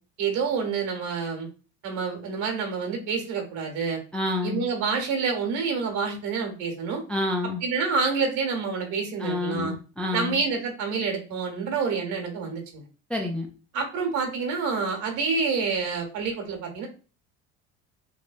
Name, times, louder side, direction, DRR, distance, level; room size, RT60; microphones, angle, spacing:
voice 1, 0.2-1.5 1.8-4.0 4.4-7.0 7.6-9.7 10.1-12.8 13.7-16.9, right 5 dB, 65° right, 2 dB, 1.2 m, -28 dB
voice 2, 4.1-4.7 7.1-7.6 9.2-10.4 13.1-13.5, left 2 dB, 5° left, 0 dB, 0.3 m, -28 dB
3.1 x 2.1 x 2.4 m, 0.36 s
supercardioid pair, 115°, 31 cm